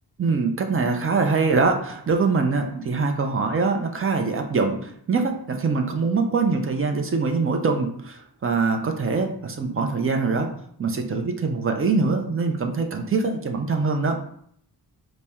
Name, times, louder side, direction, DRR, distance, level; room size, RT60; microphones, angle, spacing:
voice 1, 0.2-10.5 10.8-14.2, right 4 dB, 35° right, 4 dB, 0.4 m, -23 dB
4.2 x 2.1 x 3.4 m, 0.66 s
wide cardioid pair, 180°, 41 cm